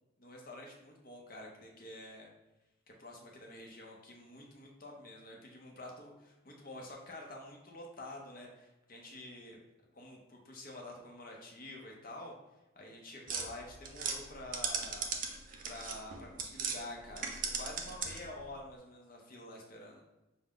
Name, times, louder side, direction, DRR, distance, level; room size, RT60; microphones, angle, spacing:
voice 1, 0.2-2.3 2.9-9.6 9.9-12.3 12.8-15.1 15.6-20.0, left 1 dB, 45° left, 0 dB, 0.6 m, -48 dB
sound 1, 13.3-16.8 17.1-18.4, right 5 dB, 40° right, 0.5 m, -38 dB
5.9 x 2.1 x 3.7 m, 0.99 s
head